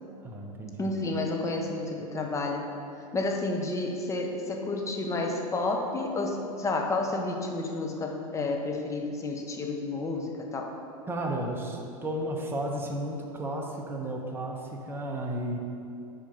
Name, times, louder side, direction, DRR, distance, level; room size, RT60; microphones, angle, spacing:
voice 1, 0.2-0.9 11.1-15.6, right 1 dB, 10° right, 0 dB, 1.0 m, -33 dB
voice 2, 0.8-2.7 3.1-10.7, left 2 dB, 15° left, 2 dB, 0.9 m, -30 dB
6.3 x 4.9 x 5.5 m, 2.8 s
hypercardioid pair, 95°, 19 cm